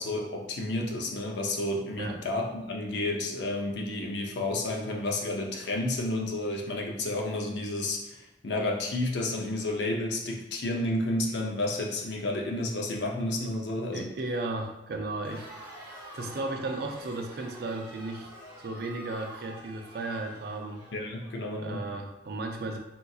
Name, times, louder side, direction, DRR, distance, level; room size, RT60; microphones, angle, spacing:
voice 1, 0.0-14.1 20.9-21.9, left 2 dB, 75° left, 1 dB, 0.5 m, -31 dB
voice 2, 13.9-15.8 16.1-18.3 18.6-20.8 21.6-22.8, right 2 dB, 60° right, 3 dB, 0.4 m, -35 dB
Crowd, 15.2-21.4, equal, 30° right, 0.8 m, -47 dB
3.6 x 2.7 x 2.3 m, 0.92 s
head